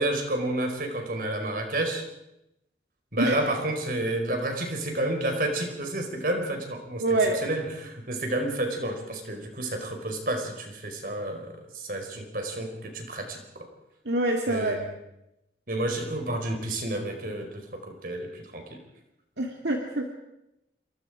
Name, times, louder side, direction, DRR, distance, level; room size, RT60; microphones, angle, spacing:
voice 1, 0.0-2.0 3.1-7.0 7.4-13.7 14.5-14.9 15.7-18.8, right 1 dB, 50° right, 4 dB, 4.8 m, -30 dB
voice 2, 7.0-7.4 14.1-14.8 19.4-20.1, right 2 dB, 70° right, 1 dB, 2.3 m, -25 dB
28.0 x 24.0 x 5.0 m, 0.86 s
head